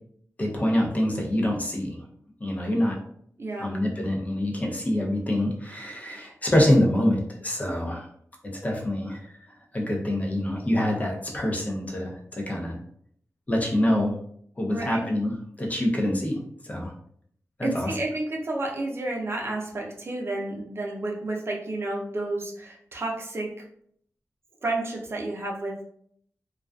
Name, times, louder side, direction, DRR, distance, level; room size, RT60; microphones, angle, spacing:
voice 1, 0.4-2.0 2.4-3.0 3.6-8.1 8.4-9.2 9.7-12.8 13.5-14.1 14.6-16.9 17.6-17.9, left 1 dB, 25° left, -1 dB, 0.6 m, -25 dB
voice 2, 3.4-3.7 14.7-15.1 17.6-23.7 24.6-25.8, right 2 dB, 45° right, -1 dB, 0.6 m, -31 dB
2.4 x 2.3 x 2.3 m, 0.65 s
wide cardioid pair, 95°, 6 cm